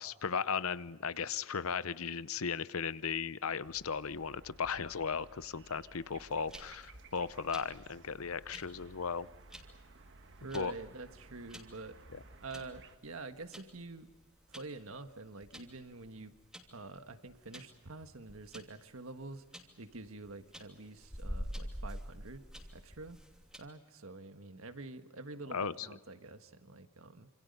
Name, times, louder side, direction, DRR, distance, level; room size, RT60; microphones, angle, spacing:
voice 1, 0.0-9.3 10.5-10.7 25.5-25.9, left 6 dB, 80° left, 16 dB, 0.8 m, -36 dB
sound 1, 3.6-13.0, right 3 dB, 60° right, 1.6 m, -57 dB
sound 2, 6.0-23.6, equal, 5° right, 2.7 m, -48 dB
voice 2, 10.4-11.9 12.4-14.1 14.5-16.3 16.7-19.4 19.8-22.4 22.7-23.2 23.6-27.3, right 3 dB, 75° right, 8 dB, 1.6 m, -47 dB
27.5 x 27.0 x 5.4 m, 1.2 s
head